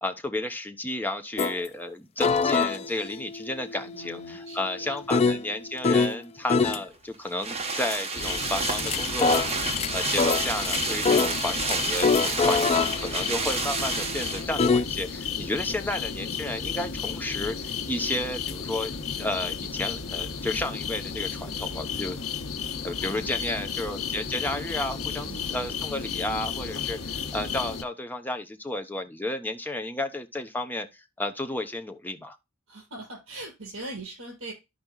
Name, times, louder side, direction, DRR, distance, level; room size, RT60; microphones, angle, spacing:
voice 1, 0.0-9.5 9.9-18.9 19.2-22.2 22.8-32.4, left 1 dB, 10° left, 0.8 m, -32 dB
sound 1, 1.4-1.6 2.2-6.2 6.5-6.8 8.5-14.9, left 4 dB, 30° left, 0.4 m, -26 dB
voice 2, 3.9-4.9 5.2-5.5 23.0-23.9 25.2-25.7 32.7-34.5, right 2 dB, 70° right, 5.8 m, -42 dB
sound 2, 6.6-14.8 15.1-15.2, right 4 dB, 30° right, 1.1 m, -30 dB
sound 3, 8.1-27.8, left 6 dB, 90° left, 1.0 m, -33 dB
13.5 x 5.1 x 2.3 m
head